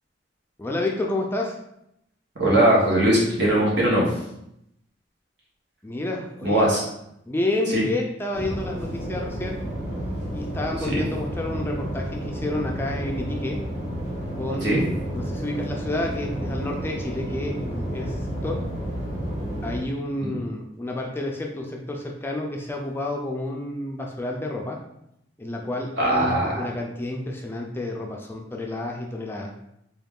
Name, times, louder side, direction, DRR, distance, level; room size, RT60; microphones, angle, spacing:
voice 1, 0.6-1.6 5.8-6.6 7.3-9.6 10.3-13.6 14.3-14.9 15.1-18.6 19.6-24.8 25.4-29.6, left 2 dB, 10° left, 0 dB, 0.3 m, -30 dB
voice 2, 2.4-4.0 6.4-6.8 7.7-7.8 10.9-11.0 14.6-14.8 20.2-20.3 26.0-26.7, right 1 dB, 65° right, -4 dB, 1.2 m, -20 dB
sound 1, 8.3-19.8, equal, 40° right, 0.9 m, -31 dB
3.8 x 2.3 x 3.6 m, 0.79 s
head